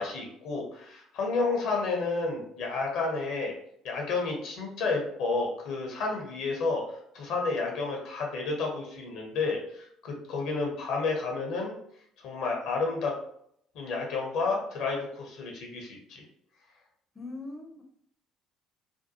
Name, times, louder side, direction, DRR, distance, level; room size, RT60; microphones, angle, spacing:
voice 1, 0.0-3.5 3.8-6.8 7.1-11.7 12.2-13.1 13.7-16.2, left 3 dB, 60° left, 0 dB, 0.7 m, -31 dB
voice 2, 17.2-17.8, left 2 dB, 20° left, 1 dB, 0.5 m, -40 dB
2.6 x 2.2 x 2.6 m, 0.68 s
figure-of-eight pair, 55°, 0 cm